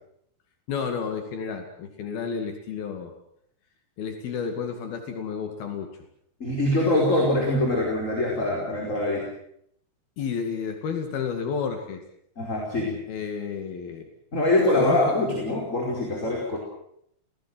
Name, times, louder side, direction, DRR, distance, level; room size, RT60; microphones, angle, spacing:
voice 1, 0.7-3.1 4.0-5.9 10.2-12.0 13.1-14.1 14.8-15.2, left 6 dB, 75° left, 5 dB, 4.1 m, -31 dB
voice 2, 6.4-9.3 12.4-13.0 14.3-16.6, left 1 dB, 20° left, -1 dB, 5.1 m, -24 dB
28.5 x 19.5 x 7.9 m, 0.73 s
omnidirectional pair, 4.4 m